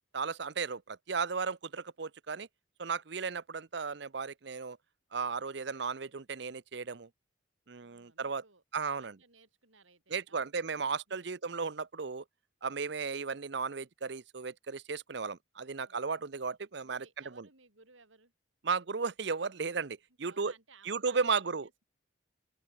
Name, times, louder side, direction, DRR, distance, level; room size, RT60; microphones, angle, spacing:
voice 1, 0.1-2.5 2.8-4.8 5.1-7.1 7.7-8.4 8.7-9.2 10.1-12.2 12.6-17.1 17.4-17.5 18.6-20.5 20.8-21.7, right 5 dB, 60° right, 0.7 m, -35 dB
voice 2, 7.8-8.6 8.9-11.4 15.6-16.0 16.8-18.3 20.2-21.8, right 4 dB, 80° right, 7.1 m, -62 dB
open air
head